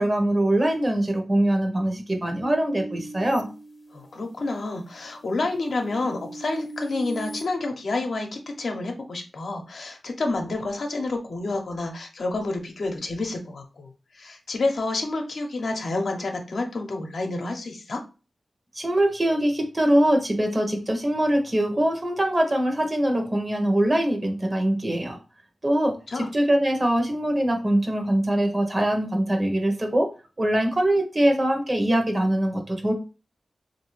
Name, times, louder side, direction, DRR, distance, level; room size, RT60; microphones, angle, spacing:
voice 1, 0.0-3.5 18.7-25.2 25.6-30.1 30.4-32.9, right 1 dB, 35° right, 4 dB, 1.0 m, -23 dB
sound 1, 2.4-4.4 4.9-7.4, right 2 dB, 35° left, 0.8 m, -39 dB
voice 2, 3.9-8.3 8.6-13.9 14.1-18.0 26.1-26.3, left 2 dB, 70° left, 3 dB, 0.8 m, -29 dB
3.3 x 2.7 x 3.1 m, 0.32 s
cardioid pair, 65°, 0 cm